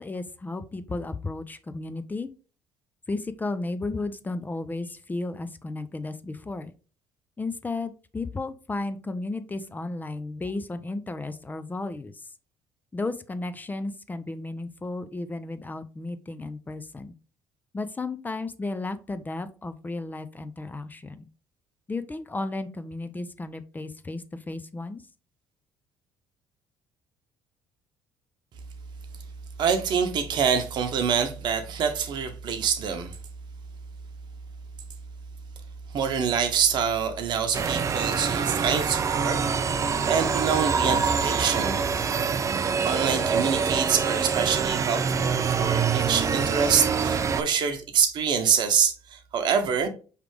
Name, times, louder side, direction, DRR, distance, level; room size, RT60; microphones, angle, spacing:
voice 1, 0.0-2.3 3.1-6.7 7.4-12.3 12.9-17.1 17.7-21.2 21.9-25.0, left 2 dB, 20° left, 0.5 m, -34 dB
voice 2, 29.6-33.2 35.9-39.8 40.0-41.8 42.8-49.9, right 7 dB, 60° right, 0.9 m, -26 dB
sound 1, 37.5-47.4, right 6 dB, 35° right, 0.5 m, -25 dB
4.9 x 3.3 x 3.2 m
hypercardioid pair, 65°, 9 cm